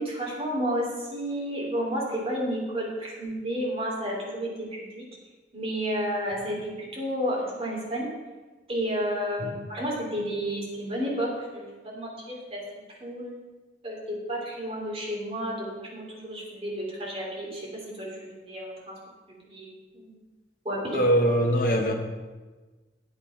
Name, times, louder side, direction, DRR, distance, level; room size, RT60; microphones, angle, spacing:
voice 1, 0.0-5.0 5.5-8.1 8.7-12.6 13.0-13.3 13.8-19.0 19.3-19.7 19.9-20.1 20.6-21.0, equal, 35° right, -3 dB, 3.1 m, -31 dB
voice 2, 20.9-21.9, equal, 50° left, 1 dB, 1.4 m, -22 dB
9.2 x 8.3 x 5.8 m, 1.3 s
head